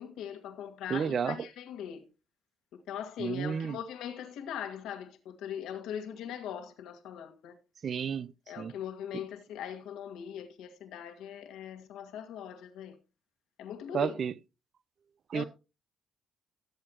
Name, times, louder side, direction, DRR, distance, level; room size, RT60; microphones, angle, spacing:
voice 1, 0.0-2.0 2.9-7.6 8.5-13.0 13.6-14.2 15.3-15.4, left 9 dB, 90° left, 1.8 m, -40 dB
voice 2, 0.9-1.4 3.2-3.8 7.8-8.7 9.1-9.2 13.9-14.3 15.3-15.4, right 7 dB, 55° right, 0.6 m, -32 dB
17.0 x 7.8 x 3.0 m
cardioid pair, 90°, 0 cm